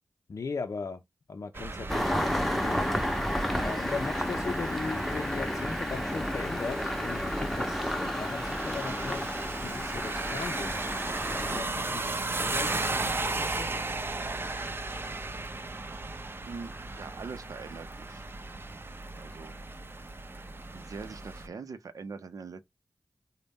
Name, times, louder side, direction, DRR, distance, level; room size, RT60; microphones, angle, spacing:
voice 1, 0.3-1.0 1.3-2.8 3.5-9.4 9.6-10.9 11.2-13.8, left 4 dB, 60° left, 0.5 m, -38 dB
sound 1, 1.5-21.5, right 2 dB, 40° right, 0.5 m, -36 dB
Engine starting, 1.9-11.6, equal, ahead, 0.7 m, -31 dB
voice 2, 16.4-18.2 19.2-19.5 20.7-22.6, right 4 dB, 85° right, 0.6 m, -42 dB
4.0 x 2.1 x 3.5 m
cardioid pair, 50°, 6 cm